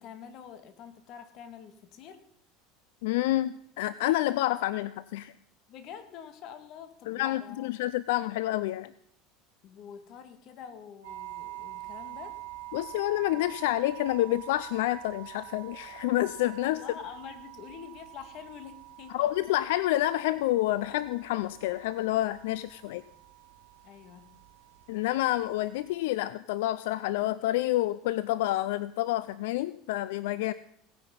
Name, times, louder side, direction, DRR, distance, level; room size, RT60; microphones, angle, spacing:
voice 1, 0.0-2.2 5.7-7.7 9.6-12.4 16.6-19.3 23.8-24.4, left 8 dB, 50° left, 9 dB, 2.0 m, -46 dB
voice 2, 3.0-5.3 7.1-8.9 12.7-16.8 19.1-23.0 24.9-30.5, left 15 dB, 80° left, 16 dB, 0.5 m, -28 dB
sound 1, 11.0-26.0, right 16 dB, 85° right, 1.6 m, -46 dB
17.5 x 9.7 x 5.3 m, 0.68 s
supercardioid pair, 130°, 0 cm